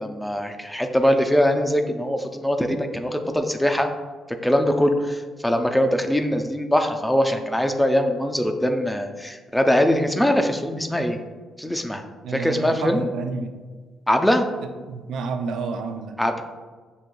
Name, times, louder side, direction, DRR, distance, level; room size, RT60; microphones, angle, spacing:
voice 1, 0.0-3.9 4.3-11.2 11.6-12.0 12.3-13.0 14.1-14.5 16.2-16.4, equal, 5° left, 5 dB, 0.4 m, -22 dB
voice 2, 12.2-13.5 14.9-16.2, right 4 dB, 80° right, 5 dB, 0.4 m, -30 dB
6.4 x 2.8 x 2.2 m, 1.4 s
cardioid pair, 90°, 0 cm